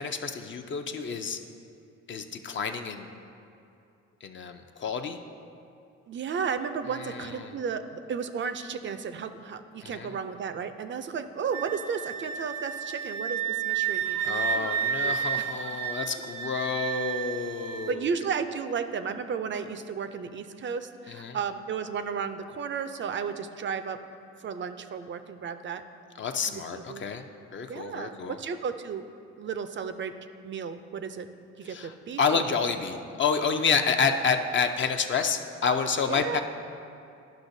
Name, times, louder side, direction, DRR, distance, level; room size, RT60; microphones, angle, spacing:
voice 1, 0.0-1.4 2.1-3.1 4.2-5.2 7.0-7.5 9.8-10.1 14.2-18.0 21.1-21.4 26.2-27.2 27.5-28.4 31.7-36.4, left 5 dB, 40° left, 6 dB, 0.5 m, -29 dB
voice 2, 6.1-14.7 15.0-15.5 17.9-24.0 24.4-25.8 26.4-27.0 27.7-29.0 29.4-30.1 30.4-31.3 31.6-32.4 36.1-36.4, right 6 dB, 40° right, 10 dB, 0.4 m, -33 dB
Wind instrument woodwind instrument, 11.5-17.9, right 8 dB, 90° right, 0.6 m, -31 dB
11.5 x 5.6 x 2.7 m, 2.7 s
cardioid pair, 90°, 30 cm